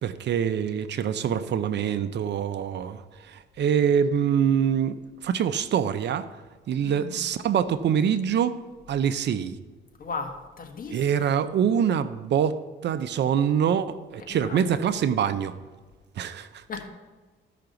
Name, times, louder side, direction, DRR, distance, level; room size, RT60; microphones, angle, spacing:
voice 1, 0.0-6.3 6.7-8.6 8.9-9.6 10.9-15.5 16.2-16.6, right 8 dB, 60° right, 12 dB, 0.6 m, -25 dB
voice 2, 6.8-7.2 10.0-11.0 14.3-14.8 16.7-16.9, left 4 dB, 45° left, 3 dB, 1.5 m, -36 dB
13.5 x 5.9 x 3.9 m, 1.3 s
cardioid pair, 90°, 20 cm